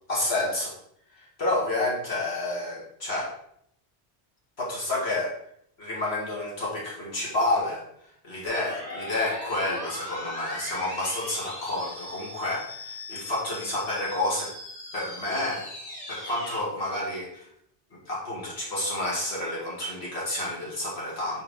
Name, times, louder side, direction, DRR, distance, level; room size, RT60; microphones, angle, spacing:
voice 1, 0.1-0.7 1.1-3.3 4.6-5.4 5.8-7.8 8.2-14.5 14.9-15.7 16.1-17.5 17.9-21.4, left 2 dB, 75° left, -5 dB, 2.3 m, -29 dB
sound 1, 8.4-16.6, left 1 dB, 35° left, 1.4 m, -39 dB
6.5 x 4.7 x 3.5 m, 0.70 s
omnidirectional pair, 1.1 m